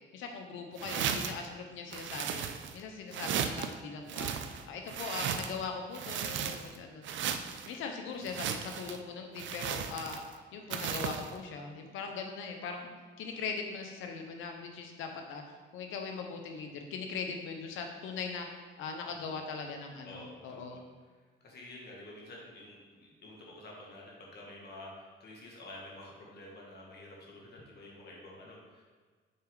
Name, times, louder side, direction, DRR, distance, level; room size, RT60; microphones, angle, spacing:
voice 1, 0.1-2.5 2.7-4.3 4.7-7.1 7.7-10.2 10.5-12.9 13.2-15.4 15.7-18.5 18.8-20.8, left 5 dB, 90° left, 4 dB, 0.8 m, -40 dB
sound 1, 0.8-1.5 1.9-2.8 3.1-3.7 4.1-5.6 5.9-6.8 7.0-7.7 8.2-9.0 9.4-10.3 10.7-11.3, right 8 dB, 70° right, 0.5 m, -35 dB
voice 2, 20.0-20.8 21.4-28.8, left 1 dB, 55° left, -3 dB, 1.8 m, -49 dB
6.5 x 4.4 x 3.8 m, 1.5 s
cardioid pair, 90°, 20 cm